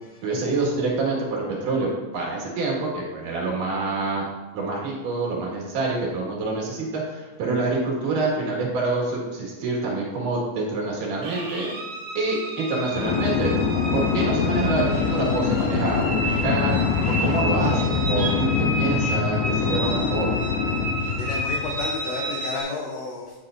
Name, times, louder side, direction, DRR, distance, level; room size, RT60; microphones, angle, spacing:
voice 1, 0.2-4.2 4.5-11.7 12.1-13.5 13.9-16.8 17.1-20.3, right 3 dB, 75° right, -3 dB, 3.2 m, -26 dB
sound 1, 11.2-22.6, right 1 dB, 55° right, 1.3 m, -31 dB
sound 2, 12.9-21.9, left 6 dB, 85° left, 2.2 m, -24 dB
voice 2, 21.1-23.3, left 4 dB, 70° left, -1 dB, 1.6 m, -31 dB
9.9 x 7.3 x 2.5 m, 1.2 s
omnidirectional pair, 3.8 m